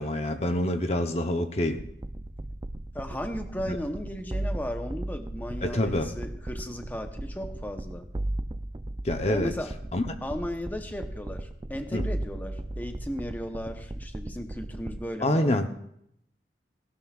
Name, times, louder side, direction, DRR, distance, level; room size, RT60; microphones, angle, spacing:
voice 1, 0.0-1.8 3.7-3.8 5.6-6.1 9.0-9.5 9.9-10.0 11.9-12.1 15.2-15.7, left 1 dB, 35° left, 7 dB, 0.8 m, -26 dB
sound 1, 1.8-15.1, right 1 dB, 20° right, 0.4 m, -36 dB
voice 2, 2.9-8.1 9.2-9.7 10.2-15.5, equal, 10° left, 6 dB, 0.9 m, -36 dB
18.0 x 17.0 x 2.4 m, 0.73 s
head